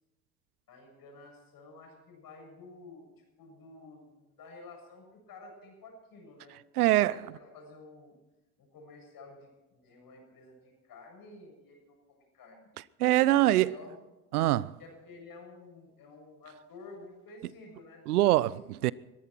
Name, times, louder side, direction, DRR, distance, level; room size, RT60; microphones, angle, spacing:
voice 1, 0.7-8.1 8.6-12.7 13.1-14.1 14.8-18.0, left 3 dB, 50° left, 7.5 m, -51 dB
voice 2, 6.8-7.2 13.0-13.7 14.3-14.7 18.1-18.9, right 15 dB, 85° right, 0.6 m, -24 dB
21.5 x 14.5 x 4.5 m
hypercardioid pair, 65°, 44 cm